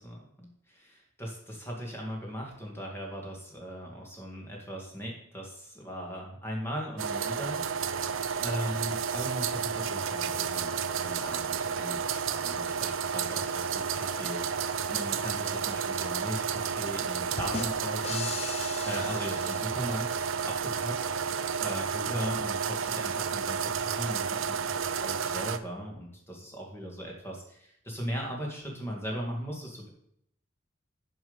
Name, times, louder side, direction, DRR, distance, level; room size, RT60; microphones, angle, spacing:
voice 1, 0.0-7.6 7.8-21.1 21.6-29.9, equal, 10° left, -1 dB, 2.3 m, -38 dB
sound 1, 7.0-25.6, right 6 dB, 75° right, 0.5 m, -31 dB
sound 2, 17.4-20.2, left 4 dB, 30° left, 0.7 m, -39 dB
7.8 x 5.4 x 7.2 m, 0.70 s
head